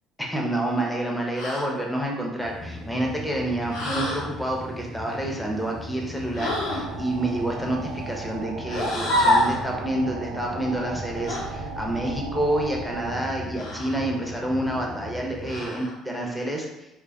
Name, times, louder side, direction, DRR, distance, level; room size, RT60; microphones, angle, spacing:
voice 1, 0.2-16.7, right 1 dB, 5° left, -1 dB, 0.7 m, -28 dB
sound 1, 1.3-1.7 3.7-4.3 6.3-6.9 8.7-9.6 11.3-11.5 13.5-14.0 15.4-15.9, left 1 dB, 75° left, 0.7 m, -26 dB
sound 2, 2.4-15.7, left 1 dB, 40° left, 1.2 m, -39 dB
sound 3, 6.4-13.2, right 4 dB, 80° right, 0.3 m, -37 dB
2.4 x 2.2 x 3.4 m, 0.92 s
supercardioid pair, 70°, 0 cm